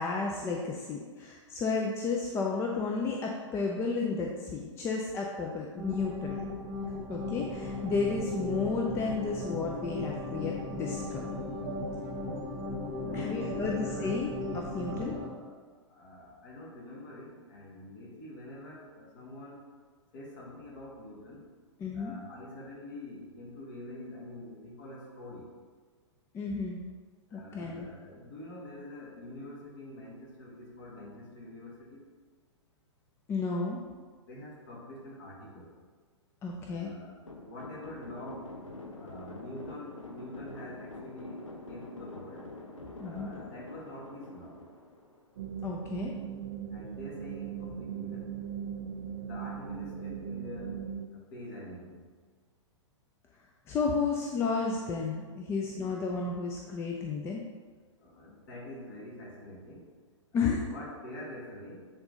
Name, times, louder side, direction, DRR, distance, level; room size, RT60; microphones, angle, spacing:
voice 1, 0.0-6.5 7.1-11.4 13.1-15.1 21.8-22.1 26.3-26.8 27.3-27.9 33.3-33.8 36.4-36.9 43.0-43.3 45.6-46.2 53.7-57.4 60.3-60.6, left 4 dB, 15° left, 0 dB, 0.5 m, -32 dB
sound 1, 5.8-15.3, left 2 dB, 20° right, 1.1 m, -36 dB
voice 2, 13.0-14.2 14.8-15.6 15.9-19.7 20.1-21.5 21.9-25.5 27.3-32.1 34.2-35.8 36.7-38.5 39.0-42.5 43.0-44.6 46.7-48.4 49.2-50.8 51.1-52.0 55.5-55.8 58.0-59.9 60.3-61.9, left 1 dB, 45° left, -3 dB, 1.9 m, -46 dB
sound 2, 37.3-45.6, left 2 dB, 80° left, 0.7 m, -46 dB
sound 3, 45.4-51.1, right 8 dB, 50° right, 0.4 m, -39 dB
7.9 x 3.8 x 3.9 m, 1.5 s
figure-of-eight pair, 105°, 16 cm